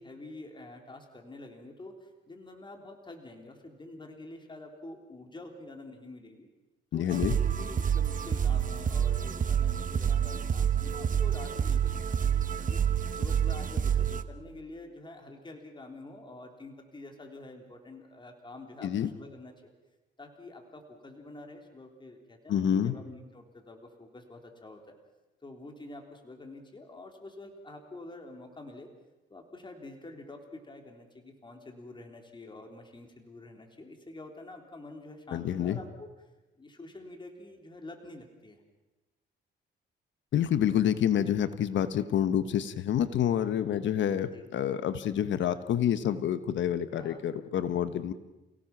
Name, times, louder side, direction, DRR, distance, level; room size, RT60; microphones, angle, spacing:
voice 1, 0.0-6.5 6.9-12.8 13.1-19.7 20.2-24.8 25.4-28.9 29.3-36.3 36.6-38.6 44.3-44.9 46.9-47.2, left 2 dB, 25° left, 3 dB, 3.7 m, -47 dB
voice 2, 6.9-7.4 18.8-19.1 22.5-22.9 35.3-35.8 40.3-48.1, left 9 dB, 70° left, 12 dB, 1.2 m, -28 dB
sound 1, 7.1-14.2, right 8 dB, 40° right, 1.2 m, -28 dB
29.5 x 17.5 x 6.1 m, 1.1 s
cardioid pair, 90°, 20 cm